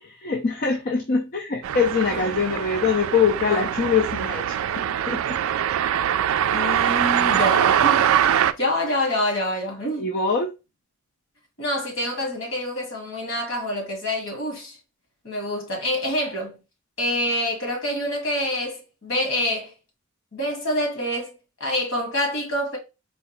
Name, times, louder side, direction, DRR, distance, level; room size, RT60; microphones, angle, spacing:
voice 1, 0.2-5.4 10.0-10.5, left 5 dB, 45° left, 0.5 m, -23 dB
sound 1, 1.6-8.5, right 9 dB, 75° right, 0.3 m, -22 dB
voice 2, 2.1-2.4 3.5-3.6 6.5-8.1 8.6-10.1 11.6-14.8 15.2-16.6 17.0-19.7 20.3-22.8, left 1 dB, 60° left, 1.6 m, -26 dB
4.2 x 2.3 x 2.9 m
head